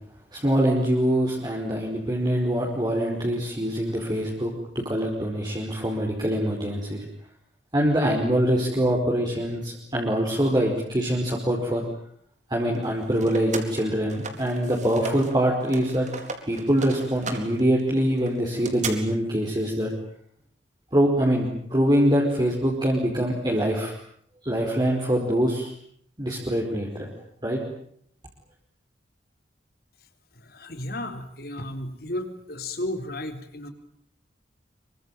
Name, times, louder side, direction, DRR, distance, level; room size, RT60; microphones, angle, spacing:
voice 1, 0.3-4.5 4.8-7.0 7.7-11.8 12.5-16.1 16.5-19.9 20.9-23.9 24.4-25.7 26.2-27.1 27.4-27.6, equal, 25° right, -3 dB, 5.0 m, -24 dB
sound 1, 12.7-15.3 15.6-18.9, right 4 dB, 40° right, 4.1 m, -36 dB
voice 2, 30.5-33.7, left 1 dB, 55° left, 8 dB, 3.8 m, -33 dB
26.5 x 24.0 x 9.1 m, 0.65 s
head